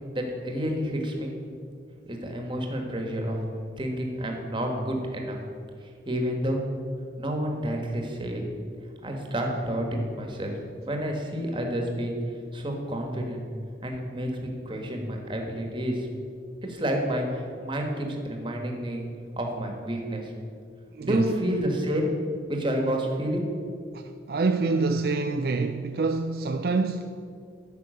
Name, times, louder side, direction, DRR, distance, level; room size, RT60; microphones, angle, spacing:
voice 1, 0.1-1.3 2.1-3.4 3.8-5.4 5.8-6.6 7.2-8.4 9.0-10.6 10.9-12.2 12.5-13.4 13.8-16.1 16.6-19.0 19.4-20.3 21.0-22.1 22.5-23.8, equal, 25° right, 1.4 m, -29 dB
voice 2, 20.9-21.3 23.9-27.1, right 3 dB, 60° right, 0.4 m, -26 dB
9.3 x 6.0 x 7.7 m
head